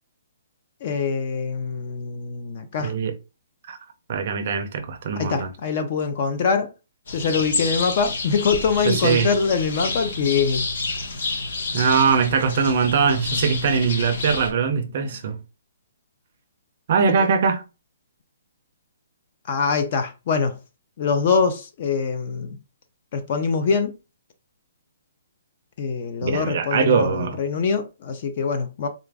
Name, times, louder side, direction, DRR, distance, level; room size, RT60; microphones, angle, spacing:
voice 1, 0.8-2.9 5.2-6.7 7.1-10.7 17.1-17.2 19.5-20.5 21.0-22.6 23.1-23.9 25.8-28.9, left 5 dB, 30° left, 0.5 m, -23 dB
voice 2, 2.8-3.1 3.7-3.8 4.1-5.5 8.8-9.3 11.7-15.4 16.9-17.6 26.2-27.4, right 6 dB, 35° right, 0.5 m, -21 dB
sound 1, 7.1-14.5, left 3 dB, 55° left, 0.9 m, -29 dB
3.8 x 2.5 x 3.3 m
hypercardioid pair, 180°, 0 cm